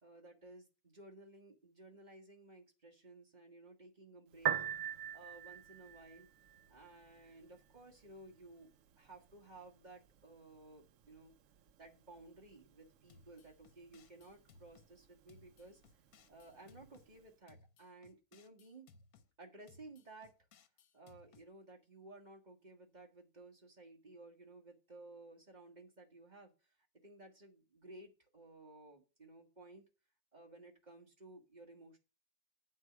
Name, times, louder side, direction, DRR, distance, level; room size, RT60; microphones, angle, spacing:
voice 1, 0.0-4.6 5.1-6.3 6.7-8.7 9.0-11.3 11.8-15.8 16.3-18.9 19.4-20.3 20.9-26.5 27.0-29.8 30.3-32.0, right 2 dB, 30° right, 1 dB, 1.7 m, -56 dB
Piano, 4.3-17.3, right 10 dB, 65° right, 0.9 m, -46 dB
sound 1, 13.1-14.9 15.3-17.1 17.5-19.3 19.7-21.5, left 4 dB, 75° left, 1.3 m, -64 dB
8.3 x 4.6 x 7.0 m, 0.31 s
omnidirectional pair, 1.6 m